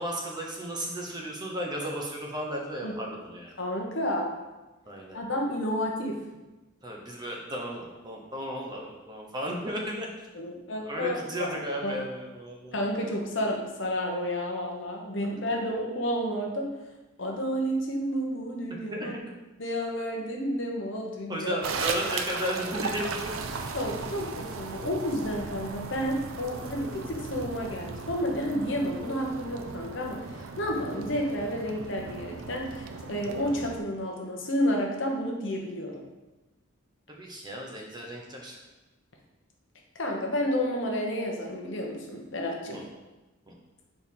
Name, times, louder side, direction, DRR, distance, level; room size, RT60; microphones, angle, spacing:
voice 1, 0.0-3.6 4.9-5.2 6.8-10.1 10.8-12.8 15.5-15.8 18.7-19.3 21.3-23.6 26.8-27.2 37.1-38.6 42.7-42.9 43.5-43.6, equal, 20° right, -1 dB, 0.9 m, -35 dB
voice 2, 3.6-4.3 5.1-6.2 10.4-12.0 12.7-16.7 17.2-19.1 19.6-21.6 23.7-35.9 39.9-42.8, equal, 60° left, 0 dB, 1.1 m, -31 dB
sound 1, 21.6-33.8, right 4 dB, 80° right, 0.5 m, -37 dB
4.5 x 4.4 x 5.5 m, 1.1 s
head